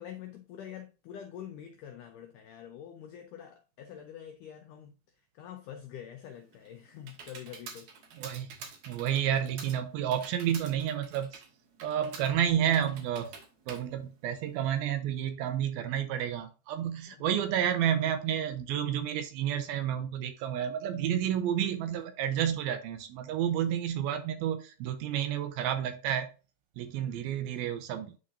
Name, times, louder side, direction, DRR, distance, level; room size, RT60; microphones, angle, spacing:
voice 1, 0.0-7.9 17.1-17.7, left 9 dB, 90° left, 1.8 m, -46 dB
Computer keyboard, 6.2-14.8, right 5 dB, 65° right, 1.8 m, -48 dB
voice 2, 8.2-8.5 8.9-11.4 11.8-13.3 13.7-26.3 26.8-28.1, right 10 dB, 80° right, 2.4 m, -30 dB
11.0 x 3.8 x 2.6 m
omnidirectional pair, 4.7 m